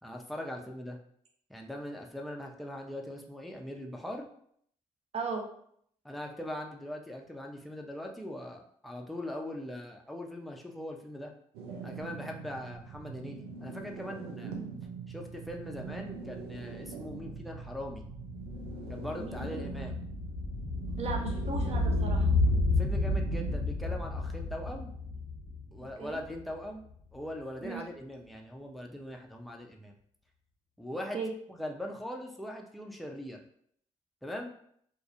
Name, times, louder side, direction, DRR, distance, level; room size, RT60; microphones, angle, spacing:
voice 1, 0.0-1.0 1.5-4.3 6.0-11.3 11.8-14.5 15.1-18.0 18.9-20.0 22.8-24.9 25.7-26.9 27.1-29.9 30.8-31.2 31.5-33.4 34.2-34.5, left 1 dB, ahead, 1 dB, 0.5 m, -41 dB
voice 2, 5.1-5.4 19.2-19.7 21.0-22.3 26.0-26.2 27.6-27.8 31.1-31.3, right 4 dB, 40° right, 1 dB, 0.7 m, -37 dB
sound 1, 11.5-23.5, right 5 dB, 80° right, 0.4 m, -43 dB
Large Low Rumble, 15.9-16.0 16.3-26.6 26.9-27.0, left 2 dB, 75° left, 0.5 m, -32 dB
2.2 x 2.1 x 2.7 m, 0.66 s
hypercardioid pair, 45°, 16 cm